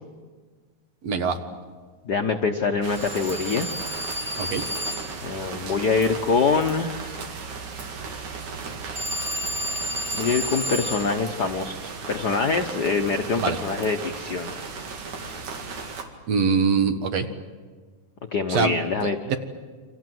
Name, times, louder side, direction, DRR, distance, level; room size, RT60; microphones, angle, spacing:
voice 1, 1.0-1.4 4.4-4.6 13.4-13.6 16.3-17.3 18.5-19.4, right 5 dB, 65° right, 7 dB, 2.7 m, -23 dB
voice 2, 2.0-3.7 4.2-4.5 5.2-7.2 10.1-14.6 18.3-19.2, left 4 dB, 65° left, 5 dB, 1.0 m, -25 dB
sound 1, 2.8-16.0, right 4 dB, 80° right, 3.7 m, -36 dB
Telephone, 3.0-5.3 9.0-11.2, equal, 30° right, 1.4 m, -31 dB
29.5 x 25.5 x 7.8 m, 1.5 s
omnidirectional pair, 3.3 m